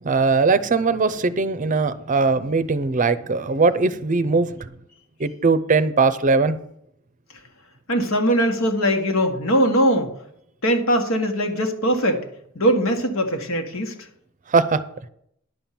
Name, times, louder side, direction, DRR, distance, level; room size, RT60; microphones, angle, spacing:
voice 1, 0.0-4.7 5.2-6.6 14.5-14.8, right 4 dB, 40° right, 13 dB, 0.6 m, -20 dB
voice 2, 7.9-10.1 10.6-12.2 12.6-13.9, equal, 75° left, 4 dB, 1.7 m, -21 dB
10.5 x 7.1 x 5.9 m, 0.71 s
head